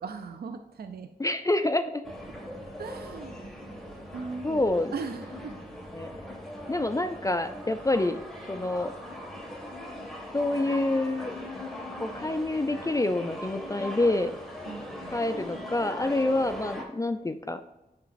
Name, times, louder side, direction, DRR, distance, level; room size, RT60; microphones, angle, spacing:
voice 1, 0.0-1.1 2.8-3.5 4.1-5.6 14.7-15.2, right 4 dB, 75° right, 8 dB, 0.5 m, -39 dB
voice 2, 1.2-2.0 4.4-4.9 5.9-6.1 6.7-8.2 8.5-8.9 10.3-11.4 12.0-14.3 15.1-17.6, left 2 dB, 20° left, 9 dB, 0.4 m, -27 dB
sound 1, 2.0-16.8, left 1 dB, ahead, 1.7 m, -40 dB
10.5 x 4.0 x 2.6 m, 0.95 s
cardioid pair, 50°, 16 cm